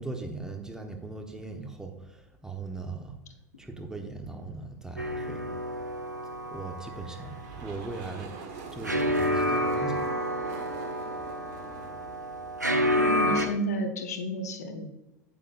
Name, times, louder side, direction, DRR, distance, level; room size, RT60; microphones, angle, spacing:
voice 1, 0.0-3.2 3.6-5.6 6.5-8.4 8.7-10.1, right 3 dB, 5° right, 4 dB, 1.1 m, -39 dB
sound 1, 5.0-13.5, equal, 90° right, 0.7 m, -30 dB
sound 2, 6.8-13.3, right 4 dB, 45° right, 1.5 m, -45 dB
voice 2, 13.0-14.9, equal, 65° left, 6 dB, 0.9 m, -31 dB
9.2 x 8.5 x 2.5 m, 0.95 s
figure-of-eight pair, 85°, 9 cm